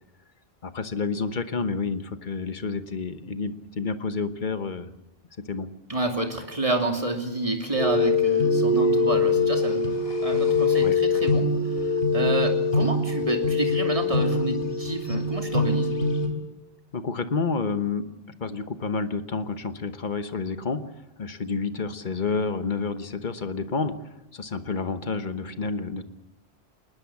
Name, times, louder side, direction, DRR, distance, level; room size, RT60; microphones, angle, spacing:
voice 1, 0.6-4.9 5.5-5.7 10.8-10.9 16.9-18.0 18.4-20.8 21.2-23.9 24.3-26.0, left 4 dB, 50° left, 10 dB, 1.3 m, -29 dB
voice 2, 5.9-9.8 10.2-16.0, right 2 dB, 35° right, 3 dB, 2.8 m, -29 dB
sound 1, 7.8-16.3, left 3 dB, 70° left, 3.2 m, -23 dB
21.5 x 20.0 x 7.2 m, 0.94 s
omnidirectional pair, 1.0 m